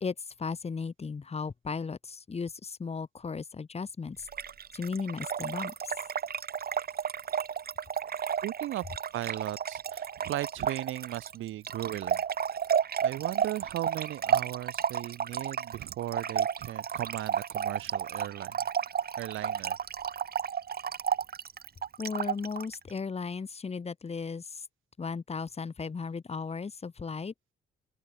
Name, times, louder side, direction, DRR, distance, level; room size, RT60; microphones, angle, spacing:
voice 1, 0.0-4.3 4.7-5.7 22.0-24.6 25.0-27.5, left 5 dB, 30° left, 2.1 m, -36 dB
Trickle dribble / Fill (with liquid), 4.3-22.7, right 7 dB, 50° right, 3.4 m, -32 dB
voice 2, 8.4-8.9 9.1-12.2 13.0-18.6 19.2-19.8, right 14 dB, 85° right, 4.8 m, -37 dB
open air
cardioid pair, 90°, 20 cm